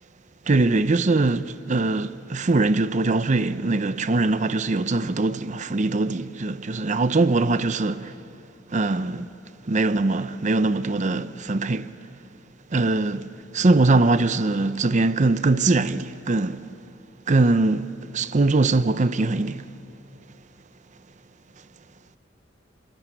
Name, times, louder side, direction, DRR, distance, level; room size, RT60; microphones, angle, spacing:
voice 1, 0.5-8.1 8.7-9.3 9.7-11.9 12.7-16.7 17.3-19.6, right 3 dB, 40° right, 0.6 m, -22 dB
26.0 x 23.0 x 9.0 m
head